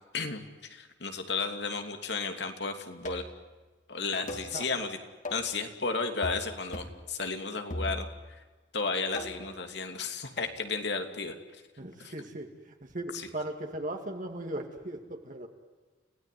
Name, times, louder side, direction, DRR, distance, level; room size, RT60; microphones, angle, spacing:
voice 1, 0.7-3.2 3.9-5.0 5.3-8.1 8.7-11.6 12.0-12.1, left 4 dB, 65° left, 6 dB, 3.0 m, -33 dB
sound 1, 3.0-3.4 4.3-4.5 5.2-5.5 6.2-6.5 6.7-7.0 7.7-8.3 9.1-9.5 10.4-10.6, left 1 dB, 45° left, 3.1 m, -38 dB
voice 2, 4.2-4.9 11.8-15.5, right 1 dB, 45° right, 3 dB, 2.5 m, -38 dB
29.5 x 18.0 x 9.4 m, 1.3 s
head